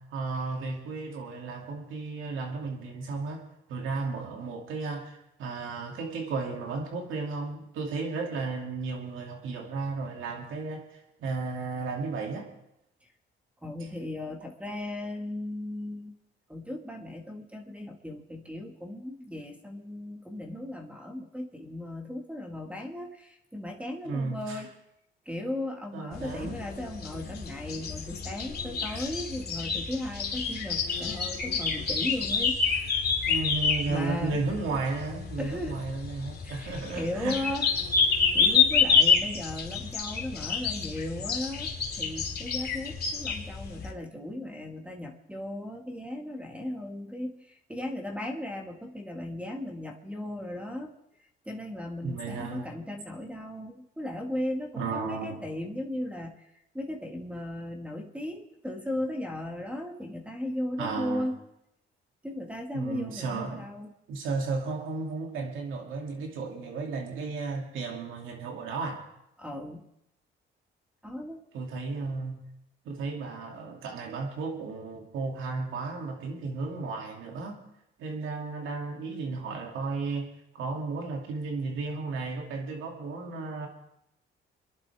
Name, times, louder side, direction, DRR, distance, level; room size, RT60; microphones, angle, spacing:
voice 1, 0.0-12.5 24.1-24.6 25.9-26.6 28.9-29.0 33.2-37.4 52.0-52.7 54.8-55.4 60.8-61.3 62.7-63.7 64.1-69.0 71.5-72.4 72.8-77.6 78.0-80.3 80.5-83.7, right 4 dB, 85° right, 1 dB, 2.6 m, -34 dB
voice 2, 13.6-16.1 16.5-24.7 25.2-32.6 33.9-34.4 35.4-35.8 36.4-37.7 38.0-50.9 51.4-61.3 62.2-63.9 69.4-69.8 71.0-71.4, left 1 dB, 5° right, 3 dB, 1.7 m, -36 dB
Birdsong in Tuscany, 26.1-43.9, left 6 dB, 55° left, 2.2 m, -28 dB
26.5 x 11.0 x 3.5 m, 0.83 s
cardioid pair, 90°, 20 cm